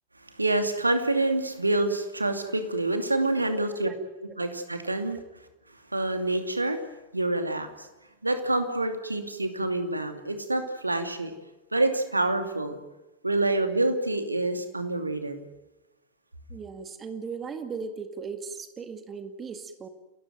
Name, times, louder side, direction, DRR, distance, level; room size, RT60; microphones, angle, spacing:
voice 1, 0.4-3.9 4.2-5.2 5.9-6.8 7.1-7.9 8.2-11.3 11.7-12.8 13.2-15.4, right 2 dB, 85° right, 7 dB, 2.6 m, -27 dB
voice 2, 3.2-4.0 4.8-4.9 10.2-10.3 16.5-19.9, right 5 dB, 20° right, 8 dB, 2.1 m, -38 dB
30.0 x 14.5 x 9.2 m, 1.1 s
figure-of-eight pair, 90°, 0 cm